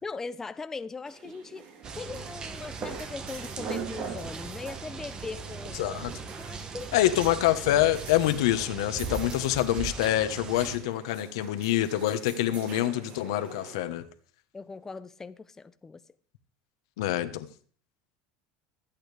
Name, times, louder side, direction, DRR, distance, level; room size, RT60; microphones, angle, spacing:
voice 1, 0.0-1.7 2.0-7.1 14.5-16.0, left 4 dB, 15° left, 0.7 m, -40 dB
sound 1, 1.0-13.8, right 5 dB, 50° right, 3.6 m, -44 dB
sound 2, 1.8-10.8, right 5 dB, 30° right, 1.4 m, -39 dB
voice 2, 5.7-6.1 6.9-14.0 17.0-17.5, left 13 dB, 85° left, 1.3 m, -26 dB
24.0 x 8.8 x 3.5 m
supercardioid pair, 120°, 3 cm